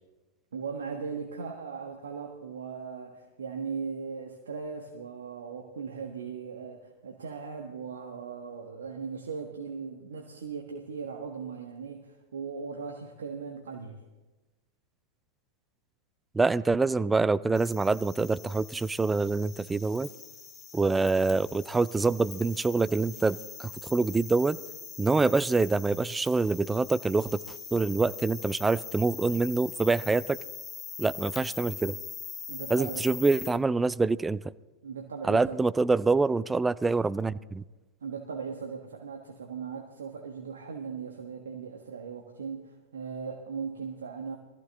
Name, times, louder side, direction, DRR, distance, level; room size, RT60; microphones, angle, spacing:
voice 1, 0.5-14.0 32.5-33.1 34.8-35.6 38.0-44.4, right 5 dB, 70° right, 2 dB, 1.3 m, -38 dB
voice 2, 16.3-20.1 20.7-24.6 25.0-27.4 27.7-30.4 31.0-32.0 32.7-34.4 35.3-37.6, right 3 dB, 10° right, 18 dB, 0.4 m, -26 dB
sound 1, 17.5-33.5, left 7 dB, 30° left, 1.9 m, -43 dB
21.0 x 14.5 x 3.7 m, 1.1 s
figure-of-eight pair, 95°, 0 cm